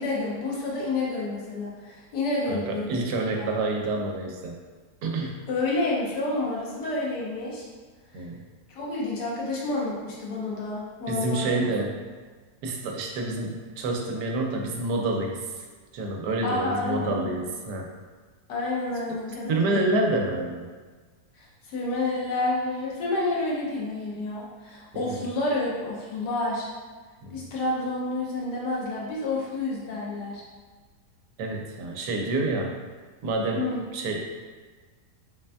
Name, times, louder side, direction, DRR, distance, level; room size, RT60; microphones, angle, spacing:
voice 1, 0.0-2.9 3.4-3.5 5.5-7.6 8.1-8.2 8.7-11.6 16.4-17.3 18.5-20.1 21.4-26.7 27.3-30.4 33.6-33.8, left 2 dB, 85° left, -4 dB, 1.4 m, -29 dB
voice 2, 2.5-4.6 5.0-5.4 8.1-8.4 11.1-11.9 12.6-15.4 15.9-17.9 19.5-20.6 24.9-25.2 27.2-27.5 31.4-32.7 33.2-34.2, right 2 dB, 85° right, 2 dB, 1.2 m, -28 dB
3.8 x 3.3 x 2.2 m, 1.4 s
omnidirectional pair, 1.7 m